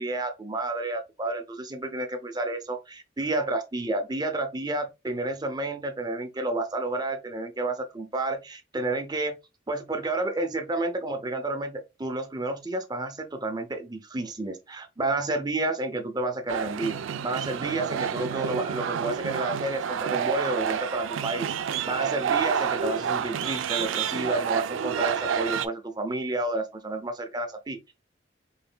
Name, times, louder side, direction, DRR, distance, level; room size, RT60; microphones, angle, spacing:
voice 1, 0.0-9.4 9.7-17.0 17.2-27.9, right 2 dB, 20° right, 0.6 m, -30 dB
sound 1, 16.5-25.7, right 7 dB, 90° right, 0.4 m, -29 dB
4.3 x 3.5 x 2.2 m
head